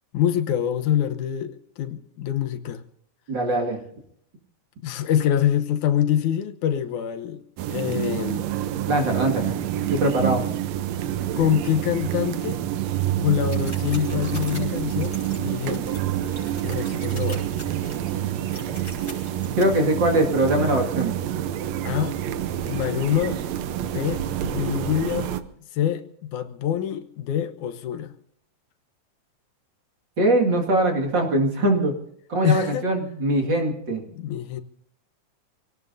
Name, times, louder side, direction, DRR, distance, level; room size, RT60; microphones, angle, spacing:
voice 1, 0.1-2.8 4.8-7.4 7.7-8.5 11.4-12.6 13.2-16.0 16.6-17.5 21.9-22.2 22.7-23.4 23.8-25.3 25.7-28.1 32.4-32.9 34.1-34.6, left 10 dB, 85° left, 2.4 m, -25 dB
voice 2, 3.3-3.8 8.9-9.6 9.9-10.4 18.7-18.8 19.6-21.1 30.2-31.9 32.3-34.0, right 1 dB, 40° right, 2.6 m, -22 dB
sound 1, 7.6-25.4, right 11 dB, 75° right, 1.9 m, -27 dB
sound 2, 13.3-19.6, left 1 dB, 5° left, 5.3 m, -43 dB
27.0 x 18.0 x 2.7 m
omnidirectional pair, 3.4 m